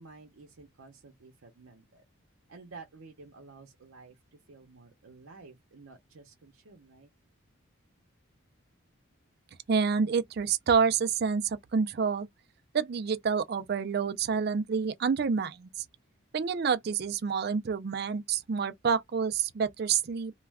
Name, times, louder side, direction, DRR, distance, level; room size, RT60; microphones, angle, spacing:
voice 1, 0.0-2.0 2.5-4.2 4.5-7.1, right 4 dB, 85° right, 0.7 m, -51 dB
voice 2, 9.7-12.3 12.7-15.8 16.3-20.3, right 6 dB, 50° right, 0.4 m, -28 dB
2.3 x 2.1 x 3.3 m
head